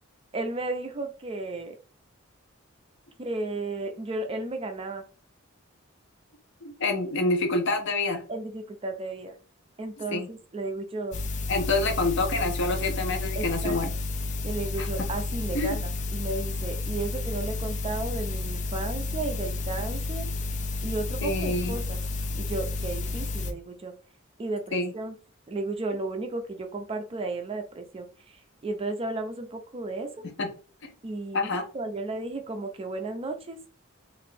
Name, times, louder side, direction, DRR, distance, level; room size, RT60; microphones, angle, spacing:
voice 1, 0.3-1.8 3.2-5.0 8.3-9.3 9.8-11.2 13.4-13.8 14.4-20.3 20.8-22.0 22.3-23.9 24.4-25.1 25.5-28.1 28.6-30.3 31.0-31.5 31.7-33.6, right 2 dB, 25° right, 6 dB, 0.4 m, -33 dB
voice 2, 6.6-8.2 10.0-10.3 11.5-13.9 14.8-14.9 15.5-15.8 21.2-21.8 24.7-24.9 30.4-30.5 30.8-30.9 31.3-31.6, left 2 dB, 60° left, 5 dB, 0.7 m, -27 dB
sound 1, 11.1-23.5, left 3 dB, 35° left, 0.4 m, -31 dB
2.9 x 2.5 x 3.3 m, 0.38 s
head